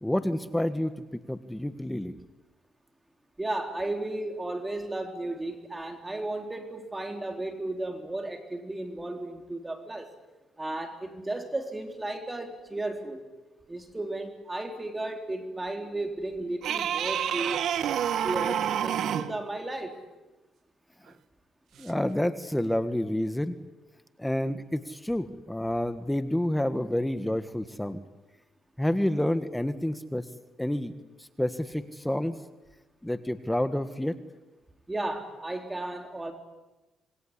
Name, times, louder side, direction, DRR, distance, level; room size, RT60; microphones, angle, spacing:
voice 1, 0.0-2.1 21.8-23.6 24.2-28.0 28.8-30.2 30.6-30.9 31.4-32.4 33.0-34.2, left 1 dB, 5° left, 11 dB, 1.5 m, -29 dB
voice 2, 3.4-10.1 10.6-13.3 13.7-17.6 18.2-20.0 34.9-36.3, right 2 dB, 15° right, 5 dB, 3.6 m, -34 dB
sound 1, 16.6-19.4 21.8-21.9, right 9 dB, 70° right, 1.4 m, -28 dB
27.0 x 21.5 x 10.0 m, 1.1 s
cardioid pair, 90°, 0 cm